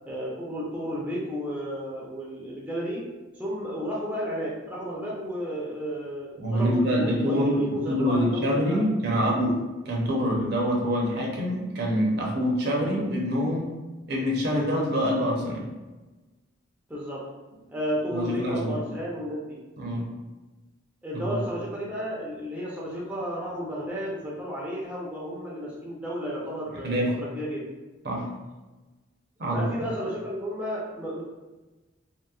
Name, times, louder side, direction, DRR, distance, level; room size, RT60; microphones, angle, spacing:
voice 1, 0.1-3.0 3.4-8.8 16.9-17.2 17.7-19.6 21.0-27.6 29.4-31.2, equal, 5° right, -6 dB, 0.4 m, -33 dB
voice 2, 6.4-9.6 9.9-13.7 14.1-15.6 18.1-18.8 19.8-20.1 21.1-21.3 26.7-27.2 28.0-28.3 29.4-29.7, equal, 55° right, -2 dB, 0.6 m, -25 dB
2.9 x 2.8 x 2.3 m, 1.2 s
head